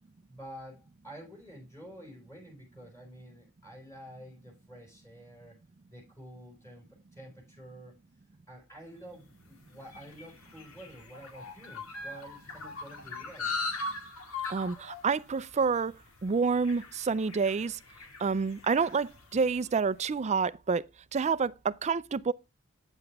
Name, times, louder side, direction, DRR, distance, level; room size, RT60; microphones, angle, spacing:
voice 1, 0.3-5.6 5.9-7.9 8.5-13.5, right 1 dB, 15° left, 4.8 m, -49 dB
sound 1, 9.2-19.8, left 3 dB, 70° left, 2.0 m, -41 dB
voice 2, 14.5-15.9 16.2-17.8 18.2-20.8 21.1-22.3, right 5 dB, 30° right, 0.4 m, -28 dB
9.0 x 7.8 x 3.4 m
head